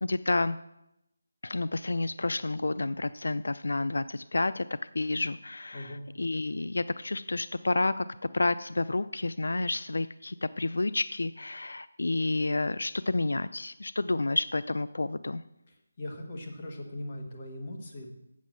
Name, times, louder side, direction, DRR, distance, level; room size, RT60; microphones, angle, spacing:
voice 1, 0.0-0.6 1.4-4.7 4.9-8.1 8.3-15.4, left 2 dB, 75° left, 14 dB, 0.3 m, -30 dB
voice 2, 5.7-6.0 16.0-18.1, left 1 dB, 20° left, 0 dB, 1.4 m, -39 dB
7.3 x 6.9 x 7.3 m, 0.85 s
figure-of-eight pair, 180°, 0 cm